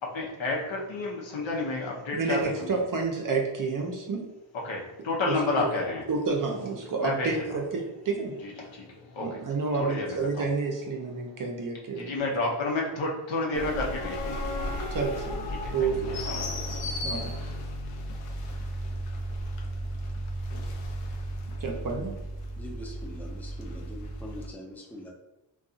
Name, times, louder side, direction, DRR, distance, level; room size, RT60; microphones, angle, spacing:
voice 1, 0.0-2.8 4.6-6.0 7.0-7.6 8.4-9.4 9.8-10.5 11.9-15.0 15.5-17.0, left 2 dB, 65° left, -2 dB, 0.8 m, -31 dB
voice 2, 2.1-4.3 5.2-5.7 6.1-8.4 9.2-12.1 14.9-15.5 15.7-16.8 17.0-17.4 21.6-22.1, right 4 dB, 40° right, 1 dB, 0.6 m, -30 dB
sound 1, 13.5-24.5, equal, 90° left, 0.6 m, -34 dB
voice 3, 22.5-25.1, left 1 dB, 5° left, -1 dB, 0.5 m, -43 dB
2.6 x 2.3 x 2.4 m, 0.96 s
cardioid pair, 55°, 50 cm